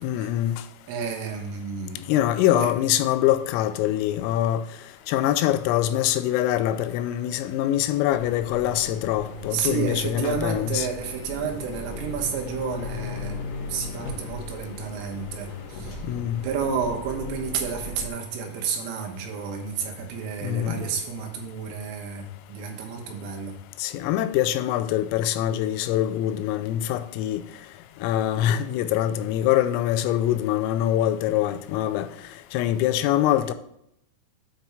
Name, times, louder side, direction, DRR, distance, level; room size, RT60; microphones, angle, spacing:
voice 1, 0.0-0.6 2.1-4.6 5.1-10.9 16.0-16.4 20.4-20.9 23.8-27.4 28.0-32.1 32.5-33.5, left 12 dB, 90° left, 3.2 m, -24 dB
voice 2, 0.9-2.0 2.5-2.7 9.5-13.4 13.7-16.1 16.4-23.6, right 6 dB, 80° right, 3.7 m, -31 dB
sound 1, 4.9-11.3, right 2 dB, 35° right, 2.6 m, -51 dB
sound 2, 8.1-18.1, left 2 dB, 70° left, 2.0 m, -37 dB
8.9 x 3.5 x 5.6 m
omnidirectional pair, 5.9 m